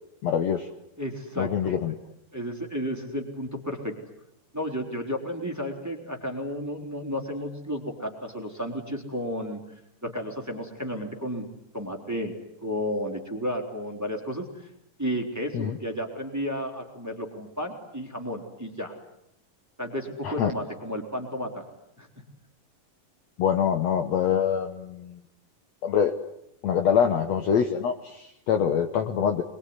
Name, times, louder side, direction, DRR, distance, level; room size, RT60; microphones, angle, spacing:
voice 1, 0.2-0.7 1.4-1.9 15.5-15.8 20.2-20.5 23.4-25.2 25.8-26.1 26.6-29.4, left 8 dB, 60° left, 6 dB, 2.1 m, -25 dB
voice 2, 1.0-1.9 2.3-3.9 4.5-9.6 10.0-11.5 11.7-12.3 12.6-14.7 15.0-18.9 19.8-21.6 22.0-22.1, equal, 5° right, 2 dB, 3.2 m, -32 dB
26.0 x 22.0 x 9.7 m, 0.79 s
omnidirectional pair, 3.9 m